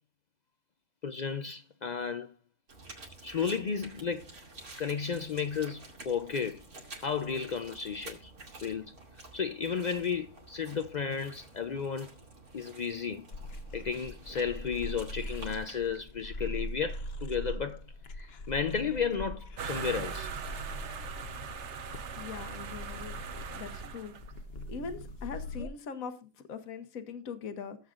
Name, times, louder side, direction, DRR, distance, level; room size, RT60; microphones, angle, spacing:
voice 1, 1.0-2.3 3.2-4.3 4.8-6.6 7.0-8.3 8.6-9.0 9.3-12.1 12.5-13.3 13.7-17.8 18.2-20.3 25.6-25.7, left 6 dB, 90° left, 0.3 m, -33 dB
sound 1, 2.7-16.0, right 2 dB, 90° right, 3.0 m, -50 dB
sound 2, 13.3-25.7, left 1 dB, 50° left, 1.1 m, -42 dB
sound 3, 19.6-24.4, right 6 dB, 55° right, 1.1 m, -40 dB
voice 2, 22.1-23.2 23.5-24.1 24.7-27.8, left 5 dB, 70° left, 1.5 m, -41 dB
16.5 x 8.0 x 2.5 m
omnidirectional pair, 1.5 m